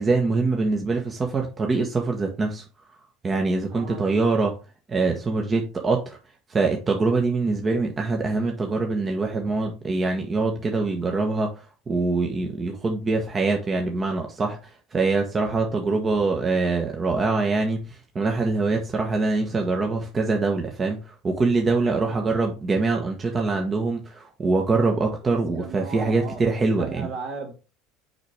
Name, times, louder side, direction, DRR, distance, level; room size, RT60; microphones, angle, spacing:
voice 1, 0.0-3.0 3.2-4.6 4.9-6.2 6.5-27.1, right 3 dB, 30° right, 1.2 m, -24 dB
voice 2, 3.7-4.0 22.0-22.4 25.2-27.5, right 4 dB, 60° right, 2.7 m, -37 dB
6.4 x 4.9 x 3.4 m
hypercardioid pair, 70°, 0 cm